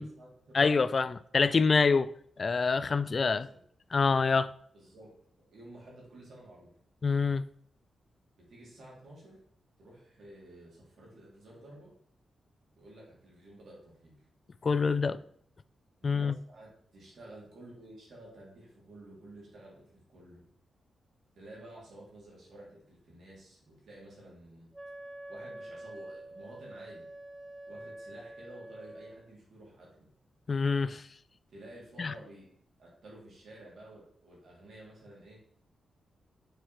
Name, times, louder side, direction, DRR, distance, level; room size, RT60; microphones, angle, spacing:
voice 1, 0.0-0.6 3.3-3.6 4.7-5.1 5.5-6.7 8.4-9.4 9.8-11.9 12.8-14.2 15.0-15.2 16.0-20.4 21.4-24.7 25.3-27.1 27.7-30.1 31.5-32.5 32.8-35.4, right 1 dB, 70° right, 3.2 m, -52 dB
voice 2, 0.5-2.1 2.4-3.5 3.9-4.5 7.0-7.4 14.6-15.2 16.0-16.4 30.5-31.0 32.0-32.1, left 4 dB, 45° left, 0.3 m, -26 dB
Wind instrument woodwind instrument, 24.7-29.2, right 1 dB, 25° right, 0.8 m, -46 dB
7.0 x 4.4 x 4.3 m
cardioid pair, 85°, 0 cm